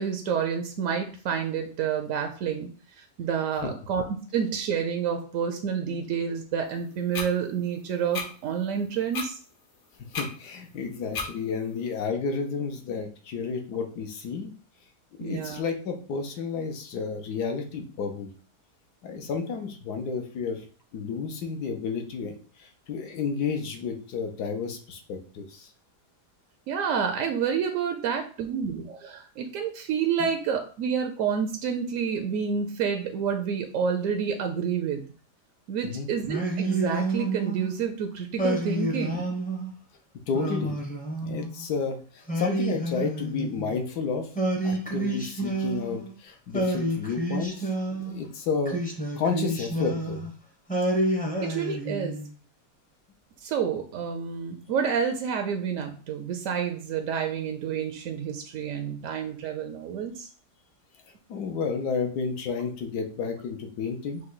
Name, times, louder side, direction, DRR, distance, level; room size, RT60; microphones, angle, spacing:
voice 1, 0.0-4.0 4.3-9.3 15.2-15.6 26.7-35.1 35.7-39.2 51.4-52.1 53.4-60.3, right 7 dB, 70° right, 5 dB, 0.8 m, -29 dB
sound 1, 7.1-7.3 8.1-8.3 9.1-9.3 10.1-10.3 11.1-11.3, left 4 dB, 55° left, 1.1 m, -31 dB
voice 2, 10.2-14.5 15.2-18.3 19.0-20.7 20.9-25.7 30.2-30.3 35.8-36.1 40.3-40.8 41.2-44.3 44.6-48.8 49.2-50.3 61.3-64.2, left 5 dB, 75° left, 4 dB, 1.3 m, -31 dB
Singing, 36.3-37.7 38.4-39.7 40.3-41.6 42.3-43.8 44.4-46.1 46.5-48.2 48.7-50.3 50.7-52.3, right 2 dB, 10° left, 0.4 m, -29 dB
5.1 x 2.3 x 3.8 m, 0.41 s
omnidirectional pair, 1.8 m